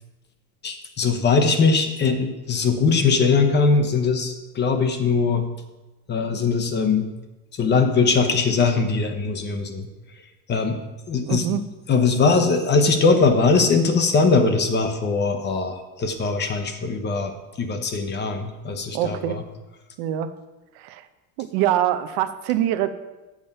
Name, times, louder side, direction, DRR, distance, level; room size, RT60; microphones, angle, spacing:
voice 1, 0.6-5.5 6.1-7.1 7.6-9.9 10.5-10.8 11.1-11.4 11.9-17.3 17.6-19.4, left 4 dB, 25° left, 7 dB, 0.8 m, -21 dB
voice 2, 11.3-11.6 18.9-19.4 20.0-20.3 20.7-21.1 21.4-22.9, right 12 dB, 60° right, 10 dB, 0.7 m, -24 dB
7.4 x 7.2 x 5.4 m, 1.1 s
cardioid pair, 145°, 41 cm